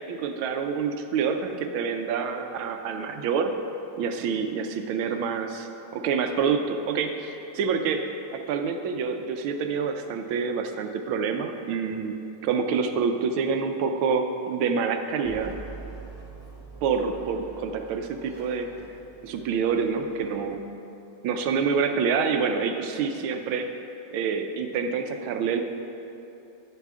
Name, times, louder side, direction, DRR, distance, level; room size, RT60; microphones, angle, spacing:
voice 1, 0.1-3.5 4.0-8.0 8.3-12.1 12.4-15.5 16.8-18.7 19.2-20.7 21.2-23.7 24.1-25.6, right 6 dB, 80° right, 6 dB, 1.5 m, -27 dB
sound 1, 15.2-20.7, right 3 dB, 20° right, 0.5 m, -45 dB
11.0 x 9.1 x 3.6 m, 2.9 s
omnidirectional pair, 2.3 m